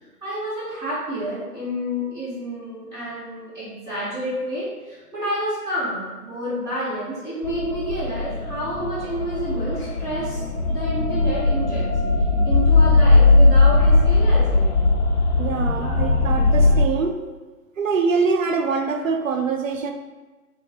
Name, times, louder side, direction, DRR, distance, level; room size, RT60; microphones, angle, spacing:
voice 1, 0.2-10.4 10.7-11.9 12.4-14.7 15.8-16.1 16.6-16.7, equal, 10° right, -13 dB, 1.3 m, -29 dB
sound 1, 7.4-16.8, left 3 dB, 45° left, 0.5 m, -18 dB
voice 2, 15.4-17.2 17.8-19.9, right 5 dB, 60° right, 4 dB, 0.5 m, -24 dB
3.4 x 2.3 x 4.2 m, 1.2 s
figure-of-eight pair, 150°, 47 cm